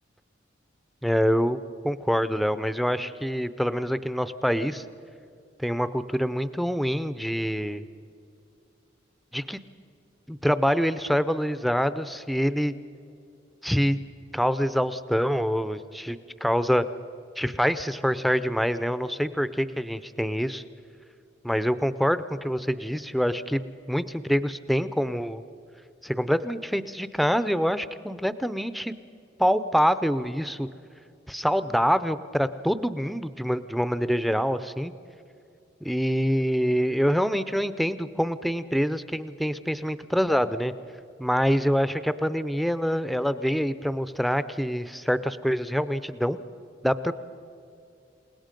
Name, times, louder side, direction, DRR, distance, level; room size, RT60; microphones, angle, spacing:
voice 1, 1.0-1.6 1.8-4.8 5.6-7.9 9.3-9.6 10.3-12.7 13.6-14.0 14.3-16.8 17.4-20.6 21.4-25.4 26.0-28.9 29.4-30.7 31.3-34.9 35.8-40.7 41.2-46.4 46.8-47.1, equal, ahead, 13 dB, 0.5 m, -25 dB
28.5 x 18.0 x 5.2 m, 2.5 s
head